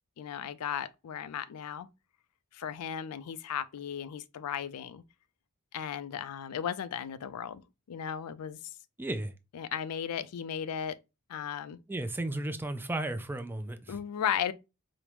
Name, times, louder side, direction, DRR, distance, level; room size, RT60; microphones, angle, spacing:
voice 1, 0.2-1.9 2.5-5.0 5.7-8.6 9.5-11.0 11.3-11.8 13.9-14.5, left 8 dB, 85° left, 0.4 m, -35 dB
voice 2, 9.0-9.3 11.9-14.0, right 1 dB, 10° right, 0.4 m, -34 dB
4.9 x 2.1 x 3.0 m
head